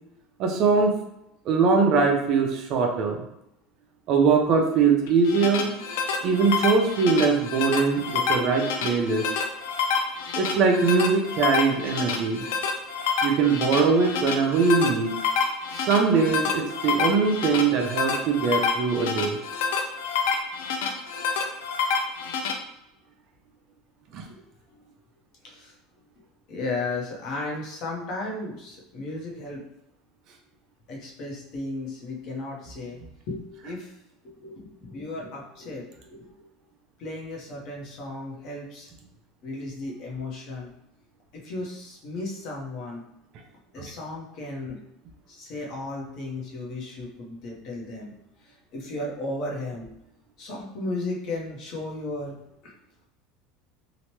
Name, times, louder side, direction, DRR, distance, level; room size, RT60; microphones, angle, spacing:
voice 1, 0.4-0.9 1.5-3.2 4.1-5.7 6.2-9.2 10.4-12.4 13.2-15.1 15.7-19.4 24.1-24.2, right 4 dB, 45° right, 2 dB, 0.5 m, -22 dB
sound 1, 5.1-22.5, left 5 dB, 80° left, 0.4 m, -28 dB
voice 2, 24.3-24.9 25.4-25.7 26.2-29.6 30.9-33.0 33.3-34.0 34.2-36.5 37.0-38.9 39.4-40.7 41.3-43.0 43.7-44.8 45.3-48.1 48.4-49.9 50.4-52.7, left 2 dB, 45° left, -1 dB, 0.8 m, -35 dB
2.9 x 2.1 x 3.0 m, 0.83 s
supercardioid pair, 150°, 0 cm